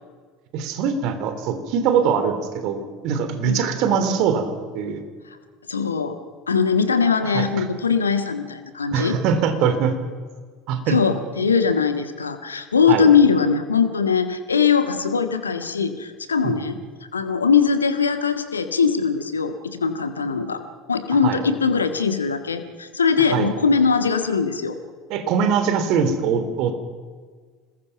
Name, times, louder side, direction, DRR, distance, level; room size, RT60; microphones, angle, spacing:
voice 1, 0.5-5.0 7.3-7.5 8.9-10.0 10.7-11.0 12.9-13.1 16.4-16.5 21.2-21.4 23.3-23.5 25.1-26.7, right 7 dB, 50° right, 8 dB, 3.4 m, -22 dB
voice 2, 5.7-6.2 6.5-9.2 10.9-16.8 17.1-20.6 20.9-24.8, left 6 dB, 80° left, 9 dB, 1.7 m, -21 dB
27.0 x 21.0 x 6.0 m, 1.6 s
figure-of-eight pair, 70°, 0 cm